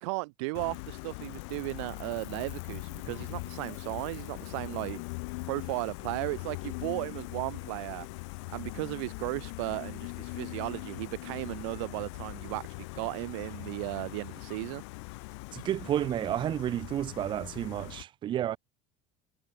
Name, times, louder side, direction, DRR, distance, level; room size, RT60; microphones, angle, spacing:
voice 1, 0.0-5.0 5.5-8.1 8.5-12.6 12.9-14.8, right 27 dB, 85° right, 2.5 m, -35 dB
Gull seagull, 0.5-18.0, left 29 dB, 80° left, 5.1 m, -41 dB
voice 2, 15.5-18.6, right 11 dB, 30° right, 7.2 m, -31 dB
cardioid pair, 175°, 15 cm